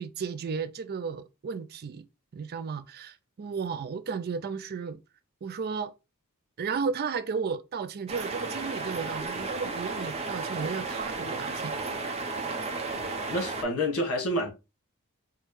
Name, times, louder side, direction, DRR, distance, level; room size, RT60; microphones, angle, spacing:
voice 1, 0.0-2.1 2.3-5.0 5.4-5.9 6.6-11.7, right 5 dB, 45° right, 0.4 m, -34 dB
sound 1, 8.1-13.6, right 3 dB, 30° right, 0.8 m, -33 dB
voice 2, 13.3-14.5, left 1 dB, 85° left, 1.6 m, -28 dB
5.9 x 2.3 x 3.1 m
head